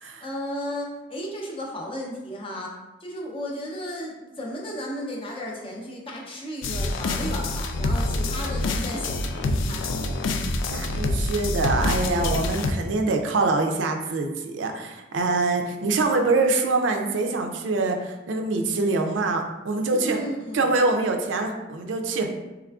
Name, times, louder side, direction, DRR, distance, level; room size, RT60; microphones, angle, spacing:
voice 1, 0.0-10.1 19.9-20.7, equal, 30° left, -1 dB, 0.6 m, -34 dB
sound 1, 6.6-12.7, left 2 dB, 80° left, 0.3 m, -26 dB
voice 2, 10.7-20.2 20.5-22.4, right 3 dB, 75° right, 4 dB, 0.4 m, -24 dB
3.6 x 3.2 x 2.3 m, 1.1 s
head